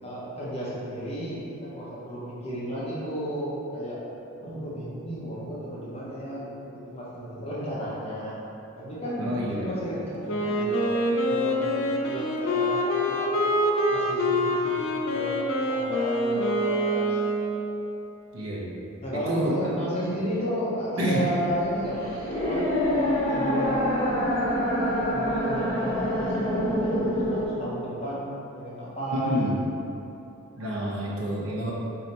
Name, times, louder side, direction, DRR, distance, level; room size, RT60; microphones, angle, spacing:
voice 1, 0.0-4.0 4.4-8.3 8.8-17.2 19.0-24.3 25.1-29.4, equal, 30° left, -8 dB, 0.8 m, -33 dB
voice 2, 9.2-9.7 18.3-18.8 19.1-19.6 21.0-21.2 29.1-29.6 30.6-31.7, equal, 75° right, -5 dB, 0.6 m, -28 dB
Wind instrument woodwind instrument, 10.2-17.9, equal, 65° left, 0.4 m, -25 dB
sound 1, 21.5-27.5, equal, 35° right, 1.1 m, -26 dB
3.2 x 2.7 x 4.1 m, 2.8 s
head